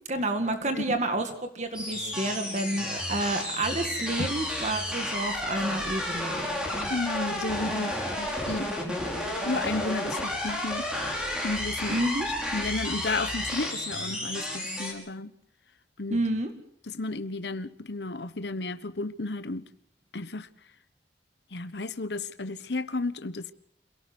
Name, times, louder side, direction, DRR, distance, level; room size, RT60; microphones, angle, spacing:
voice 1, 0.1-6.9 11.9-12.3 16.1-16.5, right 2 dB, 40° right, 1.9 m, -30 dB
sound 1, 1.7-14.9, left 1 dB, 5° right, 5.4 m, -32 dB
voice 2, 6.9-9.0 9.4-10.9 11.4-12.0 12.5-15.3 16.0-16.2 16.9-19.6 20.1-20.5 21.5-23.5, left 3 dB, 75° left, 1.1 m, -33 dB
27.0 x 17.5 x 6.1 m
head